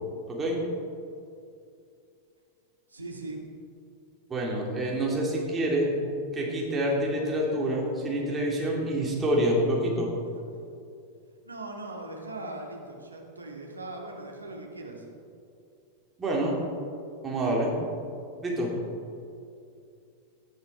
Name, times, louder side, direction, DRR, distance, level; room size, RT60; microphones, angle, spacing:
voice 1, 0.3-0.6 4.3-5.9 6.3-10.1 16.2-16.5 17.2-17.7 18.4-18.7, right 1 dB, 20° right, -3 dB, 3.5 m, -27 dB
voice 2, 2.9-3.4 11.4-15.1, right 2 dB, 80° right, 1 dB, 2.1 m, -39 dB
17.5 x 9.5 x 4.9 m, 2.5 s
figure-of-eight pair, 90°, 0 cm